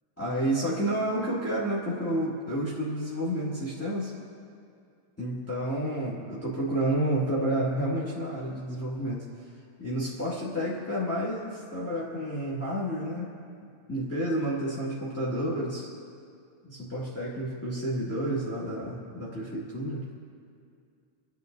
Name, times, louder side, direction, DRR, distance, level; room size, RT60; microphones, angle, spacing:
voice 1, 0.2-4.1 5.2-9.2 9.8-13.3 13.9-15.9 16.6-20.1, right 1 dB, 5° left, -6 dB, 1.3 m, -30 dB
28.0 x 10.0 x 4.0 m, 2.3 s
omnidirectional pair, 3.4 m